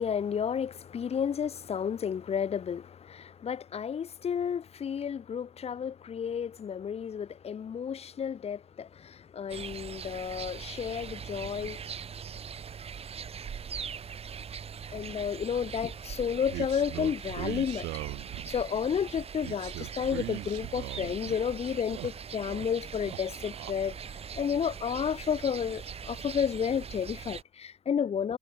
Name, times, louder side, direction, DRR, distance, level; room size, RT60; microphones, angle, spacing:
voice 1, 0.0-11.8 14.9-17.9 18.4-23.9 24.4-28.4, left 7 dB, 35° left, 1.1 m, -32 dB
sound 1, 9.5-27.4, right 7 dB, 35° right, 1.6 m, -41 dB
sound 2, 16.5-18.6 19.4-21.4 21.7-22.7 22.9-23.7, right 19 dB, 80° right, 0.8 m, -40 dB
cardioid pair, 110°, 17 cm